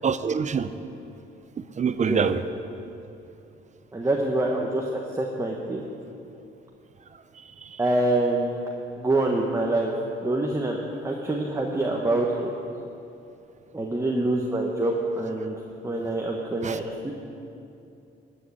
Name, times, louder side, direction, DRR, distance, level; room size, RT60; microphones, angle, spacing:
voice 1, 0.0-0.7 1.6-2.4 7.6-7.7 16.6-16.8, right 6 dB, 35° right, 11 dB, 0.7 m, -25 dB
voice 2, 1.9-2.3 3.9-5.8 7.8-8.5 9.0-9.9 10.2-10.8 11.0-12.5 13.7-15.6 15.8-17.1, right 2 dB, 15° right, -1 dB, 1.3 m, -25 dB
14.0 x 6.6 x 9.7 m, 2.7 s
cardioid pair, 90°, 20 cm